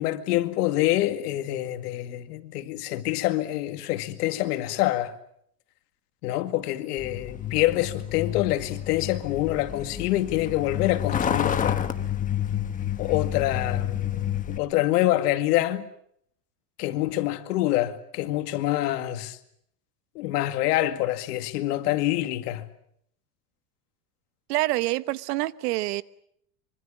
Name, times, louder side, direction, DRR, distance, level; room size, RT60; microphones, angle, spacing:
voice 1, 0.0-5.1 6.2-11.9 13.0-15.9 16.8-19.4 20.2-22.7, left 15 dB, 85° left, 2.2 m, -26 dB
Truck, 7.0-14.6, left 10 dB, 15° left, 1.2 m, -29 dB
voice 2, 24.5-26.0, right 18 dB, 90° right, 1.2 m, -26 dB
25.5 x 25.0 x 7.4 m
supercardioid pair, 160°, 45 cm